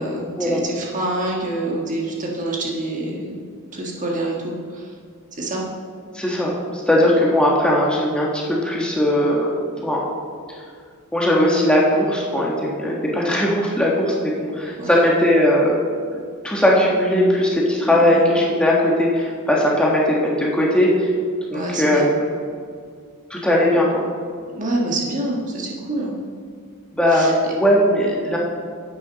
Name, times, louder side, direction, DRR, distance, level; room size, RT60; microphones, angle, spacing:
voice 1, 0.0-3.3 3.7-4.9 5.4-5.6 6.9-7.0 14.8-15.1 17.9-18.3 21.5-22.1 24.6-26.1 27.1-27.3, right 2 dB, 35° right, -2 dB, 1.5 m, -26 dB
voice 2, 6.1-6.5 6.9-9.5 9.8-10.0 11.1-15.7 16.4-21.1 21.5-22.3 23.3-24.0 26.9-28.4, left 1 dB, 5° left, -4 dB, 1.3 m, -18 dB
11.0 x 8.6 x 4.0 m, 2.1 s
head